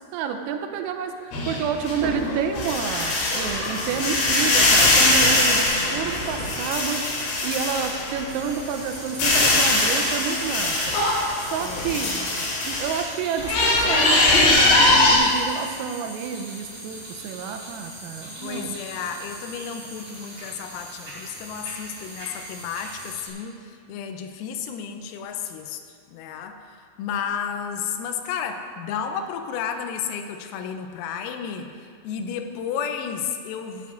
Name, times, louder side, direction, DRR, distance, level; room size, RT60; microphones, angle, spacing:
voice 1, 0.1-5.7 5.9-7.0 7.4-11.0 11.5-12.1 12.6-18.8, right 7 dB, 85° right, 6 dB, 3.3 m, -29 dB
sound 1, 1.3-8.2 8.6-13.0 13.4-15.2, left 2 dB, 75° left, 5.4 m, -21 dB
sound 2, 8.3-23.3, right 1 dB, 30° right, 3.4 m, -41 dB
voice 2, 11.6-12.4 18.4-25.8 26.1-26.6 27.0-31.7 32.0-33.9, left 7 dB, 90° left, 6 dB, 3.5 m, -32 dB
17.0 x 11.5 x 2.6 m, 2.1 s
omnidirectional pair, 6.0 m